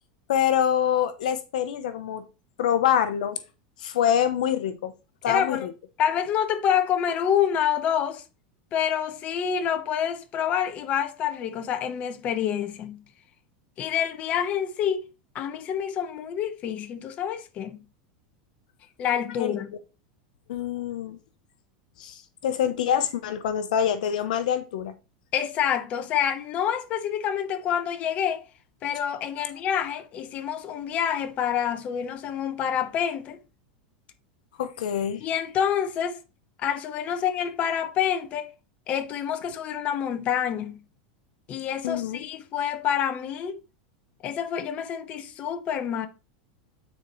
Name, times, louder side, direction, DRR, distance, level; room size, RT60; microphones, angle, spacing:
voice 1, 0.3-2.2 2.6-3.4 3.8-4.9 5.2-5.7 19.4-19.5 20.5-21.2 22.0-24.9 34.6-35.2 41.8-42.2, left 9 dB, 85° left, 0.8 m, -25 dB
voice 2, 5.3-5.7 6.0-8.2 8.7-13.0 13.8-15.1 15.3-17.8 19.0-19.7 25.3-28.4 28.8-33.4 35.2-36.2 36.6-38.5 38.9-40.8 41.5-43.6 44.2-46.1, left 9 dB, 35° left, 1.0 m, -27 dB
9.2 x 4.4 x 3.1 m
supercardioid pair, 145°, 4 cm